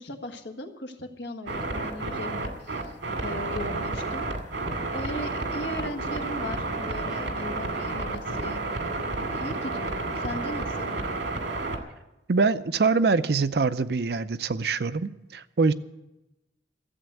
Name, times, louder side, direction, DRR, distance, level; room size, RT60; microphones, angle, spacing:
voice 1, 0.0-3.0 3.2-4.3 4.9-8.6 9.3-10.9, left 1 dB, 80° left, 1.5 m, -38 dB
sound 1, 1.5-11.8, right 2 dB, 90° right, 2.2 m, -31 dB
voice 2, 12.3-15.7, right 4 dB, 60° right, 0.5 m, -24 dB
13.5 x 8.0 x 9.1 m
head